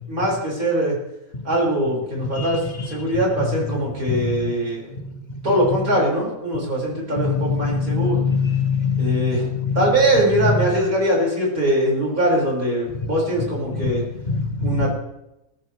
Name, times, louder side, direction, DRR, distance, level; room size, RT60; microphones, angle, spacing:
voice 1, 0.1-1.0 1.4-4.9 5.4-8.2 9.0-9.5 9.7-14.0 14.6-15.0, right 1 dB, 80° right, -4 dB, 6.3 m, -22 dB
voice 2, 2.4-2.9 3.1-3.6 4.1-4.3 7.2-9.2 9.5-9.9 10.4-10.6 13.7-13.9 14.3-14.9, left 5 dB, 30° left, 4 dB, 1.8 m, -23 dB
19.5 x 15.0 x 3.4 m, 0.89 s
omnidirectional pair, 1.5 m